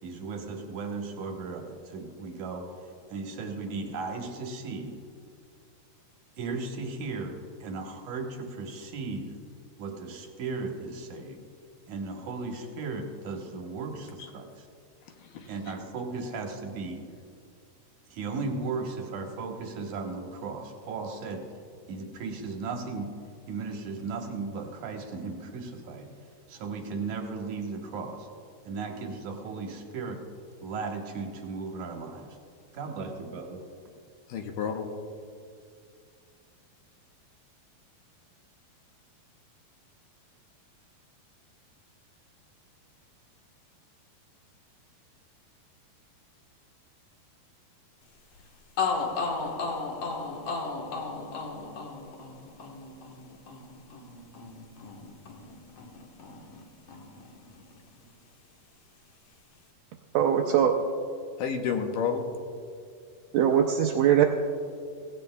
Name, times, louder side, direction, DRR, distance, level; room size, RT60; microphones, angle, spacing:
voice 1, 0.0-2.7 3.1-5.0 6.4-9.3 9.8-11.4 11.9-14.5 15.5-17.0 18.1-21.4 21.9-23.1 23.5-26.1 26.5-28.3 28.6-30.2 30.6-32.3 32.7-33.6, right 4 dB, 65° right, 2 dB, 2.3 m, -36 dB
voice 2, 15.2-15.7 34.3-34.9 61.4-62.3, left 6 dB, 75° left, 4 dB, 2.2 m, -31 dB
sound 1, 48.4-48.5 48.8-56.6 56.9-58.0, left 4 dB, 60° left, 1.8 m, -35 dB
voice 3, 60.1-60.7 63.3-64.2, right 9 dB, 85° right, 2 dB, 1.8 m, -21 dB
17.0 x 16.5 x 2.3 m, 2.3 s
omnidirectional pair, 4.4 m